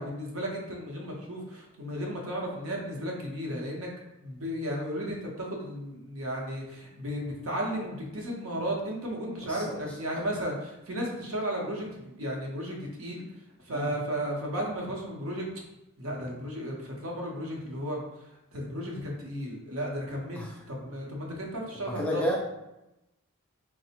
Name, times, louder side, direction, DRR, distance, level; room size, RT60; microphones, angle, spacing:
voice 1, 0.0-3.9 4.2-13.3 13.6-15.5 16.0-22.2, equal, 65° right, -1 dB, 0.7 m, -34 dB
voice 2, 21.9-22.4, left 1 dB, 5° left, -3 dB, 0.4 m, -30 dB
4.1 x 2.0 x 2.8 m, 0.92 s
head